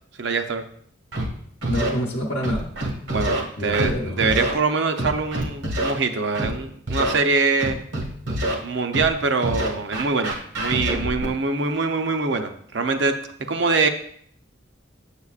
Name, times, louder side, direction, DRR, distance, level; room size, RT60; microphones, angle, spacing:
voice 1, 0.2-0.6 3.1-7.8 8.6-13.2 13.5-13.9, right 4 dB, 65° right, 7 dB, 0.6 m, -23 dB
Scratching (performance technique), 1.1-1.3 1.6-1.9 2.4-3.4 3.7-3.9 4.2-4.5 5.0-5.9 6.4-6.5 6.9-7.1 7.6-8.5 8.9-9.1 9.4-11.3, right 1 dB, 85° right, 1.6 m, -25 dB
voice 2, 1.7-2.7 3.6-4.4, equal, 55° left, -2 dB, 0.8 m, -27 dB
8.2 x 7.3 x 2.4 m, 0.64 s
head